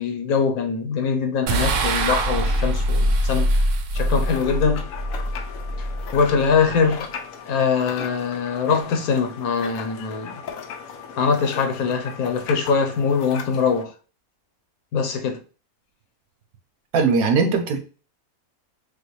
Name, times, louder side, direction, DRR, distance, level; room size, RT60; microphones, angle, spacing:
voice 1, 0.0-3.5 3.9-4.8 5.8-7.1 7.5-10.4 11.2-13.9 14.9-15.4, left 5 dB, 85° left, 1.4 m, -22 dB
sound 1, 1.5-6.8, right 1 dB, 65° right, 1.0 m, -23 dB
sound 2, 4.0-13.8, left 6 dB, 70° left, 1.1 m, -37 dB
voice 2, 16.9-17.9, right 4 dB, 85° right, 1.3 m, -19 dB
6.7 x 2.3 x 3.2 m
omnidirectional pair, 1.5 m